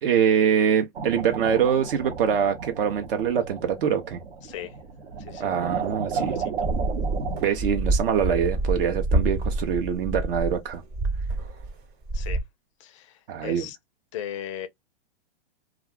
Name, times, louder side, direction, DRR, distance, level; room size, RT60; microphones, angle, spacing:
voice 1, 0.0-4.2 5.4-6.4 7.4-10.8 13.3-13.7, right 8 dB, 60° right, 0.7 m, -24 dB
sound 1, 0.9-7.5, right 5 dB, 75° right, 0.9 m, -33 dB
voice 2, 6.1-6.5 12.1-12.4 12.8-13.1 13.4-13.8 14.1-14.7, left 11 dB, 30° left, 0.4 m, -37 dB
sound 2, 6.6-11.8 12.0-12.4, right 2 dB, 20° right, 1.0 m, -27 dB
2.4 x 2.2 x 3.4 m
hypercardioid pair, 145°, 32 cm